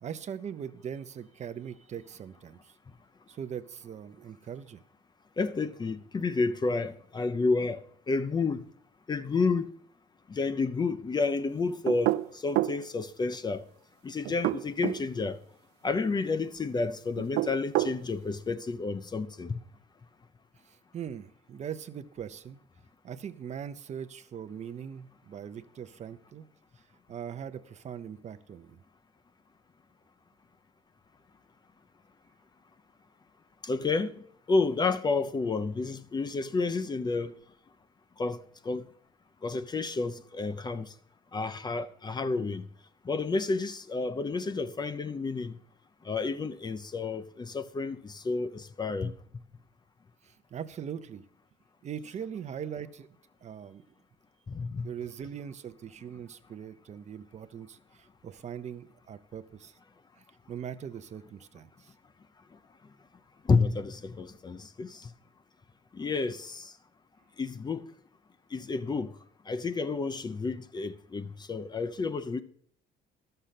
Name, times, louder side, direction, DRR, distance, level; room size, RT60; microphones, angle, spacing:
voice 1, 0.0-2.7 3.3-4.8 20.7-22.6 23.0-26.4 27.1-28.8 50.2-51.3 51.8-53.1 53.4-53.8 54.8-59.7 60.5-61.9, right 8 dB, 45° right, 0.7 m, -41 dB
voice 2, 5.4-8.6 9.1-9.7 10.3-13.7 14.0-15.4 15.8-19.6 33.6-34.1 34.5-37.3 38.2-38.9 39.4-40.9 41.3-42.6 43.0-45.6 46.0-49.1 54.5-54.9 63.4-65.1 65.9-66.7 67.4-67.9 68.5-69.1 69.5-72.4, left 4 dB, 25° left, 0.6 m, -30 dB
sound 1, 11.9-12.8 14.3-15.0 17.2-18.0, right 16 dB, 85° right, 0.5 m, -28 dB
12.5 x 6.7 x 5.8 m
cardioid pair, 110°, 17 cm